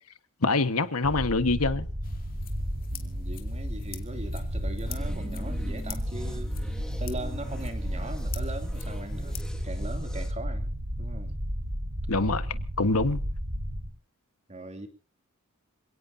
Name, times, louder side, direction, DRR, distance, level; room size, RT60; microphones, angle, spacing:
voice 1, 0.4-1.9 12.1-13.2, left 3 dB, 85° left, 1.4 m, -25 dB
sound 1, 1.0-13.9, equal, 60° right, 5.5 m, -33 dB
sound 2, 2.0-9.4, left 4 dB, 45° left, 2.6 m, -44 dB
voice 2, 2.9-9.4 9.6-10.7 11.0-11.3 14.5-14.9, right 2 dB, 30° right, 2.9 m, -40 dB
sound 3, 4.8-10.3, equal, 5° left, 2.1 m, -44 dB
27.5 x 17.5 x 2.8 m
head